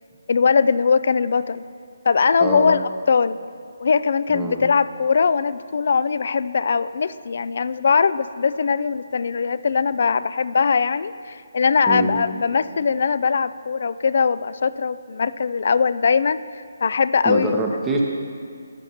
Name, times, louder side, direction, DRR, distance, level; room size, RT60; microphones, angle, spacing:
voice 1, 0.3-1.6 2.1-2.8 3.1-3.4 3.8-17.6, left 5 dB, 55° left, 16 dB, 0.3 m, -20 dB
voice 2, 2.4-2.7 4.3-4.6 11.9-12.2 17.2-18.0, right 2 dB, 15° right, -1 dB, 0.8 m, -24 dB
14.0 x 8.9 x 3.0 m, 2.2 s
figure-of-eight pair, 155°, 0 cm